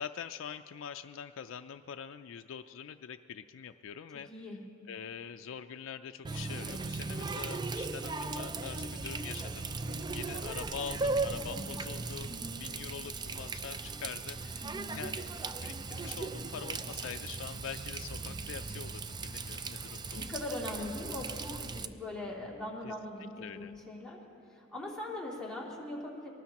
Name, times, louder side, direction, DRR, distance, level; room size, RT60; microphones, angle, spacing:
voice 1, 0.0-4.6 4.9-9.7 10.1-12.3 12.6-20.3 22.8-22.9 23.4-23.7, left 7 dB, 70° left, 7 dB, 0.4 m, -44 dB
voice 2, 4.3-4.6 11.7-11.8 12.3-12.6 14.6-15.0 20.1-24.2 24.5-26.3, left 1 dB, 5° left, -5 dB, 2.7 m, -41 dB
Water tap faucet, 6.2-21.9, right 3 dB, 20° right, 0.4 m, -38 dB
24.0 x 18.5 x 2.9 m, 2.8 s
head